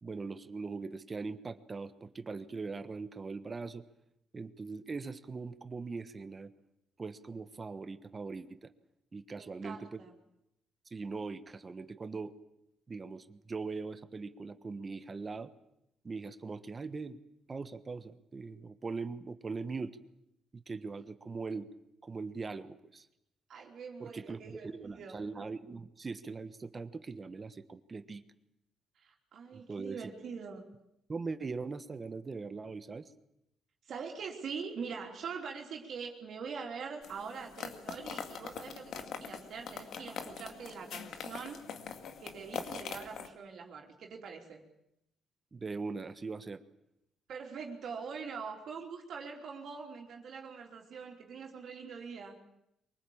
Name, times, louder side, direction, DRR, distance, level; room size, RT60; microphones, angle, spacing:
voice 1, 0.0-3.8 4.3-6.5 7.0-8.7 9.1-10.0 10.9-12.3 12.9-15.5 16.0-17.2 17.5-20.0 20.5-21.7 22.0-23.1 24.0-28.2 29.5-30.1 31.1-33.1 45.5-46.6, right 4 dB, 30° right, 12 dB, 1.3 m, -41 dB
voice 2, 9.3-10.1 23.5-25.2 28.9-30.6 33.8-41.6 42.2-44.6 47.3-52.4, right 5 dB, 65° right, 1 dB, 3.4 m, -43 dB
sound 1, 37.0-43.3, left 6 dB, 70° left, 2.2 m, -43 dB
23.5 x 19.0 x 8.7 m, 0.81 s
cardioid pair, 90°, 0 cm